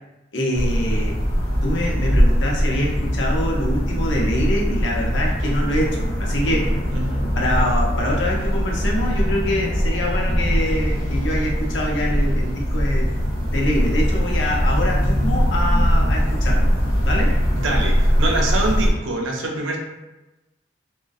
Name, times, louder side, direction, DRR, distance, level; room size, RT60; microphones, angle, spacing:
voice 1, 0.3-1.2 1.6-6.8 7.4-13.1 13.5-16.7 17.0-17.4, left 1 dB, 65° left, -1 dB, 0.6 m, -25 dB
sound 1, 0.5-18.9, equal, 30° left, 0.8 m, -21 dB
voice 2, 6.9-7.3 17.5-19.8, right 2 dB, 85° right, 0 dB, 0.5 m, -25 dB
2.5 x 2.1 x 2.3 m, 1.0 s
head